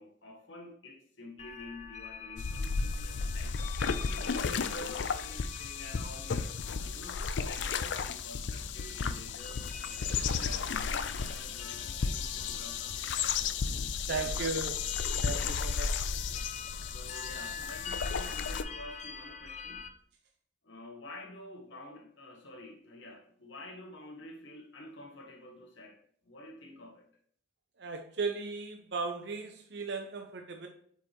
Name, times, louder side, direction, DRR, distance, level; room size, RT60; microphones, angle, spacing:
voice 1, 0.0-9.7 10.0-13.6 14.1-14.6 16.9-19.9 20.6-27.1, left 2 dB, 90° left, 1.4 m, -49 dB
sound 1, 1.4-19.9, left 6 dB, 40° left, 0.7 m, -47 dB
sound 2, 2.4-18.6, left 5 dB, 75° left, 0.5 m, -34 dB
voice 2, 14.1-14.8 15.2-15.9 27.8-30.7, right 4 dB, 65° right, 0.7 m, -36 dB
8.0 x 4.6 x 3.0 m
head